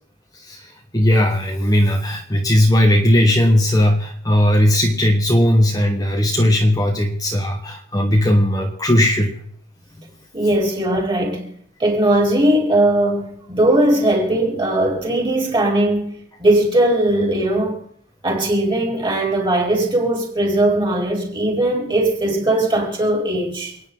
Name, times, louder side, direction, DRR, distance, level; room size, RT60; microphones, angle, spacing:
voice 1, 0.3-9.4, left 1 dB, 20° left, 1.4 m, -17 dB
voice 2, 10.3-11.4 11.8-16.1 16.4-17.8 18.2-23.7, right 1 dB, 25° right, 4.4 m, -19 dB
29.0 x 9.9 x 4.0 m
head